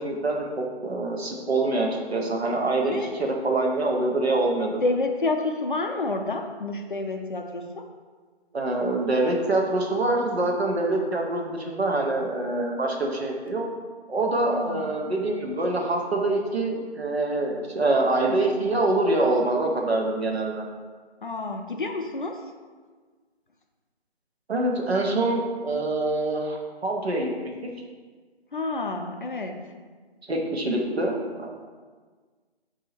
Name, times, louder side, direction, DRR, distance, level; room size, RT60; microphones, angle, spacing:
voice 1, 0.0-4.8 8.5-13.6 14.1-20.6 24.5-27.5 30.3-31.5, right 2 dB, 75° right, 0 dB, 1.0 m, -25 dB
voice 2, 4.8-7.8 14.5-14.8 21.2-22.4 28.5-29.6, left 2 dB, 50° left, 4 dB, 0.5 m, -29 dB
4.0 x 2.7 x 4.2 m, 1.5 s
figure-of-eight pair, 175°, 32 cm